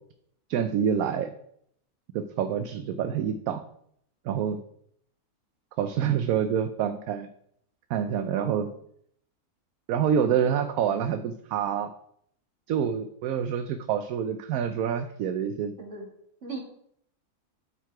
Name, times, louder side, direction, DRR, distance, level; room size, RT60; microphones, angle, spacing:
voice 1, 0.5-1.3 2.1-3.6 4.2-4.6 5.8-7.3 7.9-8.7 9.9-11.9 12.7-15.7, right 8 dB, 75° right, 9 dB, 1.1 m, -27 dB
voice 2, 8.3-8.7 15.8-16.1 16.4-16.6, right 3 dB, 50° right, 0 dB, 2.4 m, -38 dB
12.0 x 4.7 x 4.6 m, 0.70 s
omnidirectional pair, 1.6 m